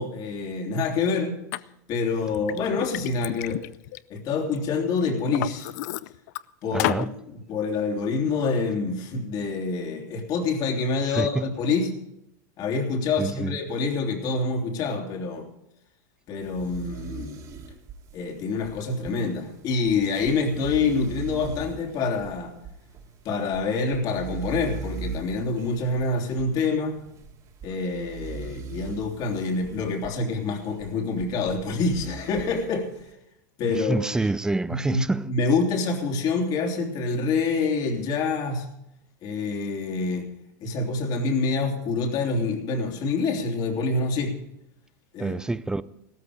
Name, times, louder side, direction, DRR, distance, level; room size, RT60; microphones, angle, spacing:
voice 1, 0.0-1.4 1.9-3.6 4.1-5.7 6.6-11.9 12.6-15.5 16.3-17.4 18.1-22.5 23.2-27.0 27.6-32.9 33.6-34.0 34.7-38.6 39.2-40.3 40.6-44.4 45.1-45.4, left 4 dB, 45° left, 3.2 m, -26 dB
Liquid, 1.5-1.6 2.2-4.6 5.0-6.4 6.8-7.1, left 16 dB, 65° left, 0.6 m, -31 dB
voice 2, 6.7-7.1 11.1-11.5 13.2-13.6 33.8-35.3 45.2-45.8, right 2 dB, 5° right, 0.5 m, -27 dB
sound 1, 16.4-33.1, right 5 dB, 35° right, 2.3 m, -40 dB
15.5 x 13.5 x 5.0 m
supercardioid pair, 120°, 10 cm